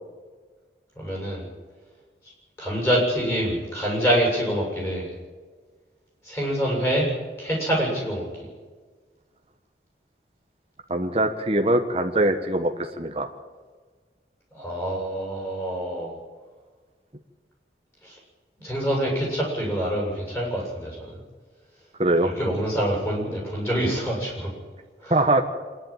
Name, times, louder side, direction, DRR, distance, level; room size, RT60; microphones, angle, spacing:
voice 1, 1.0-1.5 2.6-5.1 6.2-7.1 7.4-8.2 14.5-16.2 18.0-18.2 18.6-21.2 22.2-24.5 25.0-25.2, equal, 15° left, -2 dB, 7.9 m, -26 dB
voice 2, 10.9-12.7 13.0-13.3 22.0-22.3 25.1-25.4, right 1 dB, 30° right, 4 dB, 1.2 m, -22 dB
25.5 x 11.0 x 9.1 m, 1.4 s
head